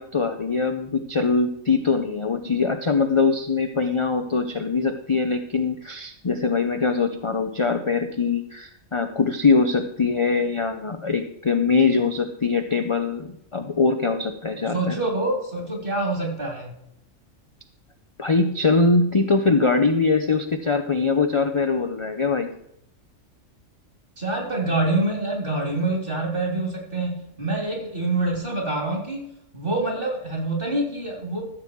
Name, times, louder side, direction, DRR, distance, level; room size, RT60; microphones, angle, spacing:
voice 1, 0.0-15.0 18.2-22.6, left 4 dB, 35° left, 6 dB, 0.5 m, -22 dB
voice 2, 14.7-16.8 24.2-29.3 29.5-31.4, right 2 dB, 40° right, 0 dB, 3.5 m, -26 dB
14.0 x 7.6 x 4.6 m, 0.77 s
omnidirectional pair, 1.4 m